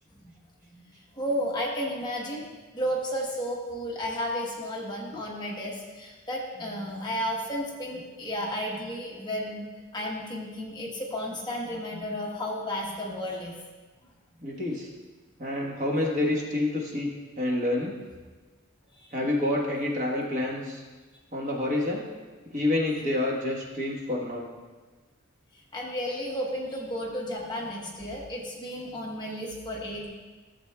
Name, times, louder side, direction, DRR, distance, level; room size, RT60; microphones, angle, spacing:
voice 1, 0.7-2.5 2.7-9.7 9.9-13.6 18.9-19.2 25.7-30.1, equal, 20° left, -3 dB, 1.1 m, -33 dB
voice 2, 14.4-14.9 15.4-17.1 17.4-17.9 19.1-20.8 21.3-22.0 22.5-24.4, left 1 dB, 35° right, -3 dB, 1.3 m, -28 dB
14.5 x 7.3 x 2.3 m, 1.3 s
head